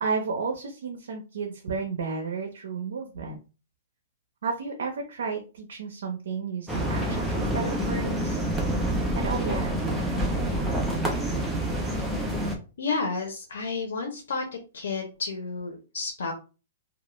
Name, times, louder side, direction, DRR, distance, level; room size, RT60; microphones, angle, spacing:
voice 1, 0.0-3.4 4.4-8.4 9.1-9.7 10.0-10.3, right 5 dB, 90° right, 2 dB, 0.6 m, -32 dB
sound 1, 6.7-12.6, right 1 dB, 5° right, 0.4 m, -27 dB
voice 2, 12.8-14.5 14.7-16.3, left 4 dB, 90° left, 3 dB, 0.6 m, -31 dB
2.3 x 2.0 x 3.0 m, 0.32 s
hypercardioid pair, 175°, 0 cm